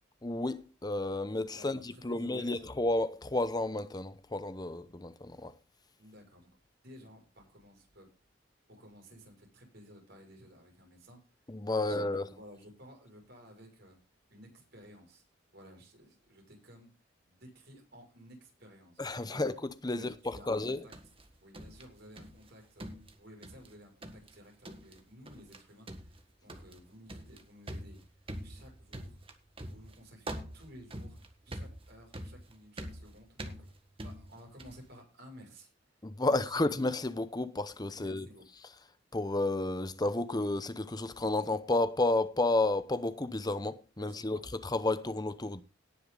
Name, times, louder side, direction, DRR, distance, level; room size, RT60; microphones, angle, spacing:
voice 1, 0.2-5.5 11.5-12.3 19.0-20.1 20.5-20.8 36.0-38.3 39.1-45.6, left 2 dB, 20° left, 0.8 m, -31 dB
voice 2, 1.4-2.6 6.0-6.5 6.8-8.1 8.7-11.2 11.8-14.0 14.3-15.2 15.5-16.9 17.3-19.5 19.9-20.9 21.4-22.9 23.2-28.0 28.4-29.2 29.7-31.2 31.4-33.6 34.0-35.7 36.3-36.7 38.0-38.4 44.0-44.4, equal, 55° right, 6.5 m, -54 dB
sound 1, 20.5-22.5 22.8-23.7 24.0-24.4 24.6-25.0 25.3-25.6 25.9-34.9, right 1 dB, 30° right, 1.7 m, -45 dB
18.5 x 6.7 x 3.9 m
head